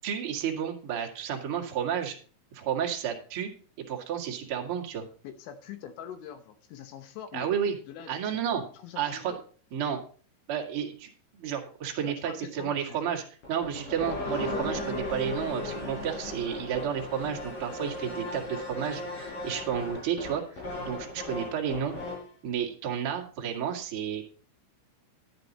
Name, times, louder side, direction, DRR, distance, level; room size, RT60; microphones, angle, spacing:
voice 1, 0.0-2.2 2.5-3.5 3.9-5.0 7.3-7.7 8.1-8.6 8.9-9.3 9.7-10.0 10.5-21.9 22.4-24.3, right 8 dB, 85° right, 1 dB, 1.2 m, -31 dB
voice 2, 5.2-7.5 7.9-8.2 8.7-9.4 12.0-13.1, left 9 dB, 75° left, 10 dB, 3.2 m, -44 dB
sound 1, 13.4-22.3, left 2 dB, 45° left, 7.2 m, -36 dB
11.0 x 9.7 x 4.1 m, 0.42 s
omnidirectional pair, 5.8 m